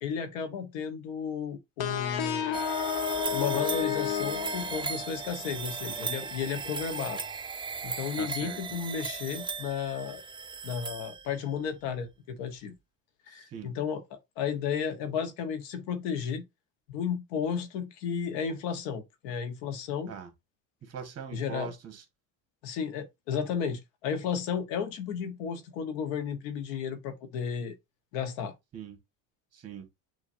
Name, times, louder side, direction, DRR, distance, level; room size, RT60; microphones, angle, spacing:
voice 1, 0.0-2.6 3.3-7.2 7.8-10.2 10.6-12.7 13.3-16.4 16.9-20.1 21.3-21.7 22.6-27.7 28.1-28.5, left 7 dB, 80° left, 1.4 m, -33 dB
sound 1, 1.8-5.3, left 9 dB, 55° left, 0.9 m, -31 dB
sound 2, 2.5-11.6, right 5 dB, 10° right, 0.5 m, -37 dB
voice 2, 8.2-8.8 13.3-13.7 20.1-20.3 20.8-22.0 28.7-29.0 29.5-29.9, right 7 dB, 35° right, 1.6 m, -42 dB
6.3 x 2.9 x 2.7 m
supercardioid pair, 105°, 45 cm